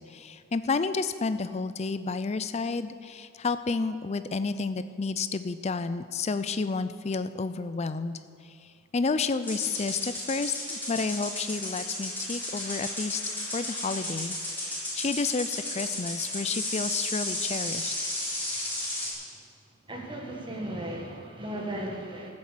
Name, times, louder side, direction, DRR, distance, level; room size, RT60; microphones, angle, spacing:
voice 1, 0.1-8.2 8.4-8.6 8.9-17.9, left 4 dB, 30° left, 12 dB, 0.4 m, -31 dB
sound 1, 9.4-19.1, left 1 dB, 10° left, 3.9 m, -33 dB
voice 2, 19.9-22.3, right 1 dB, 25° right, 0 dB, 1.7 m, -36 dB
14.0 x 7.5 x 7.4 m, 2.2 s
head